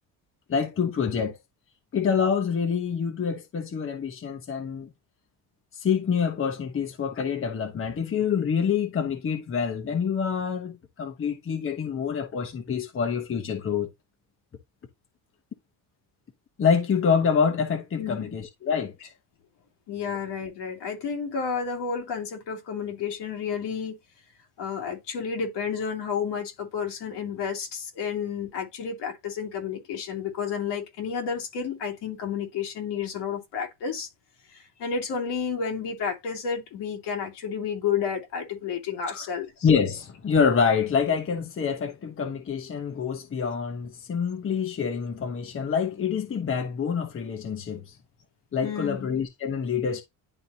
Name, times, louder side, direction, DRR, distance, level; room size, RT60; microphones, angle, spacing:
voice 1, 0.5-1.4 1.9-4.9 5.8-13.9 16.6-19.1 39.1-39.3 39.6-48.0 48.5-50.0, left 6 dB, 30° left, 1.0 m, -26 dB
voice 2, 18.0-18.3 19.9-24.0 24.6-34.1 34.5-39.7 48.6-49.1, left 6 dB, 75° left, 2.7 m, -31 dB
11.0 x 3.7 x 2.8 m
cardioid pair, 105°, 41 cm